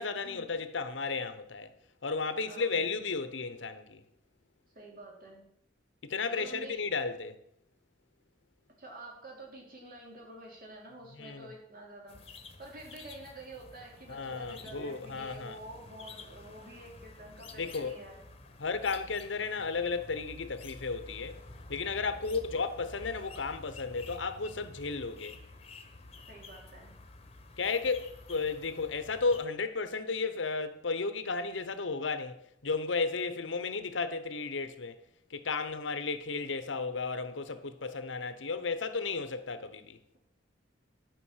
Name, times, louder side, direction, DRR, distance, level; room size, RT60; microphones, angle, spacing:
voice 1, 0.0-1.7 2.0-4.0 6.0-7.3 11.2-11.5 14.1-15.6 17.6-18.0 18.6-21.4 21.7-25.4 27.6-35.0 35.3-40.0, left 4 dB, 80° left, 1.0 m, -34 dB
voice 2, 2.4-2.8 4.7-5.4 6.3-6.8 8.8-12.2 12.6-18.2 22.2-22.4 26.3-26.9, right 1 dB, 50° right, 3.4 m, -48 dB
sound 1, 12.1-29.5, left 3 dB, 35° left, 1.1 m, -50 dB
11.5 x 5.3 x 7.3 m
head